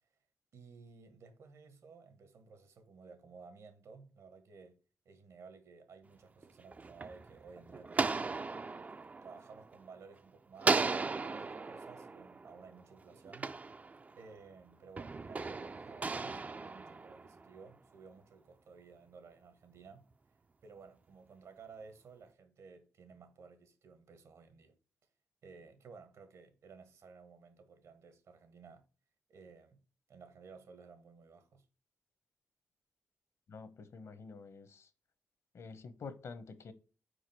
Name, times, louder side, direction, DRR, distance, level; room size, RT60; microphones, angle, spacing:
voice 1, 0.5-4.8 5.0-8.4 9.2-13.5 14.1-20.1 20.6-24.7 25.4-28.8 29.3-29.8 30.1-31.6, right 5 dB, 75° right, 1.6 m, -55 dB
sound 1, 6.4-10.1 10.6-14.4 15.0-17.6, right 4 dB, 30° right, 0.4 m, -37 dB
voice 2, 33.5-34.9 35.5-36.7, left 4 dB, 65° left, 1.0 m, -48 dB
5.0 x 4.8 x 6.0 m
cardioid pair, 100°, 5 cm